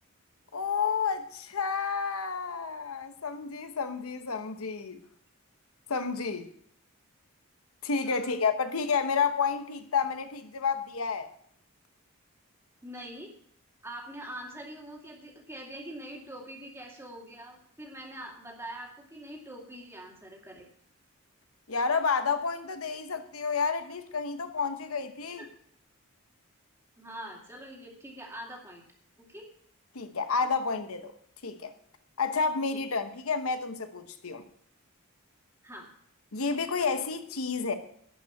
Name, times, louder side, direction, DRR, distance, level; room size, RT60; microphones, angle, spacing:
voice 1, 0.5-5.0 5.9-6.5 7.8-11.3 21.7-25.4 29.9-31.1 31.4-31.7 32.2-34.4 36.3-37.7, left 5 dB, 85° left, 1.0 m, -30 dB
voice 2, 8.0-8.3 12.8-13.3 13.8-20.7 27.0-28.8 29.2-29.5 35.6-35.9, right 1 dB, 15° right, 2.4 m, -44 dB
12.0 x 5.7 x 8.9 m
head